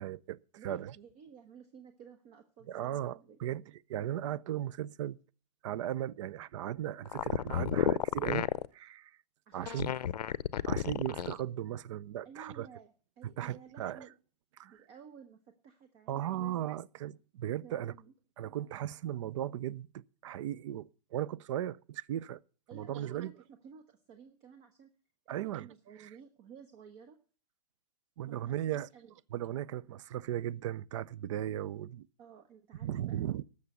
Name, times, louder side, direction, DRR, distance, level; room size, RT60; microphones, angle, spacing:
voice 1, 0.0-0.4 0.6-1.0 2.7-5.2 5.6-8.5 8.7-9.2 9.5-9.9 10.6-12.7 13.4-14.1 14.6-14.8 16.1-17.9 18.4-22.4 22.7-23.3 25.3-25.7 26.0-26.1 28.2-28.9 29.3-32.1 32.8-33.4, right 12 dB, 50° right, 0.5 m, -37 dB
voice 2, 0.6-3.5 9.5-10.1 12.2-14.1 14.6-16.5 17.6-18.1 22.7-24.9 25.3-27.2 28.3-29.1 32.2-33.3, right 7 dB, 30° right, 1.1 m, -54 dB
sound 1, 7.1-8.7 9.6-11.4, left 10 dB, 75° left, 0.6 m, -31 dB
12.5 x 6.6 x 8.1 m
hypercardioid pair, 140°, 21 cm